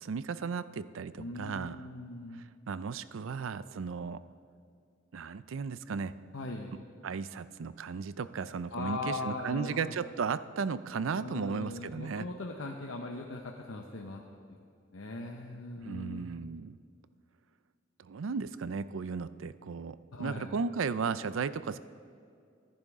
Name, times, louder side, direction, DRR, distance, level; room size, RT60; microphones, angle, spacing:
voice 1, 0.0-1.8 2.3-4.2 5.1-6.1 7.0-12.3 15.8-16.8 18.0-21.8, right 5 dB, 90° right, 15 dB, 0.5 m, -35 dB
voice 2, 1.2-2.4 6.3-6.7 8.7-9.9 11.2-14.2 14.9-16.3 20.1-20.5, left 2 dB, 85° left, 1 dB, 0.9 m, -39 dB
25.0 x 10.5 x 3.7 m, 2.4 s
head